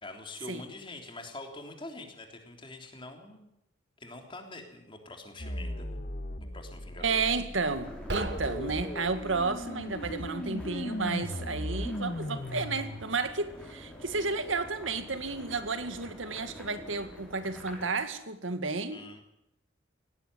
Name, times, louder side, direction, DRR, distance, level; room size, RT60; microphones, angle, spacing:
voice 1, 0.0-3.5 4.0-6.0 6.5-7.2 18.9-19.2, left 2 dB, 25° left, 4 dB, 3.4 m, -45 dB
sound 1, 5.4-13.0, left 1 dB, 45° left, 1.5 m, -37 dB
voice 2, 7.0-19.0, right 4 dB, 85° right, 10 dB, 2.0 m, -32 dB
sound 2, 7.7-17.9, equal, 5° left, 5.1 m, -47 dB
sound 3, 8.0-9.6, right 2 dB, 65° right, 1.8 m, -38 dB
17.5 x 17.5 x 9.8 m, 0.84 s
head